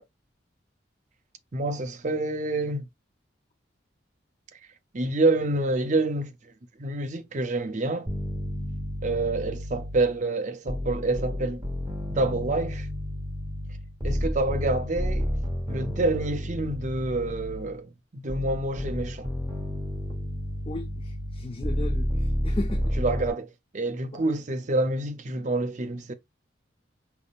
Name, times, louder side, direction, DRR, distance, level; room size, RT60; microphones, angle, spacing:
voice 1, 1.5-2.9 4.9-6.5 6.8-8.1 9.0-11.6 12.1-12.9 14.0-15.3 15.7-19.3 23.0-26.1, right 2 dB, 40° right, 0.5 m, -27 dB
sound 1, 8.1-10.2 10.7-17.8 18.3-23.3, equal, 20° right, 1.0 m, -31 dB
voice 2, 20.7-22.9, left 2 dB, 30° left, 0.4 m, -35 dB
5.2 x 3.5 x 2.4 m
head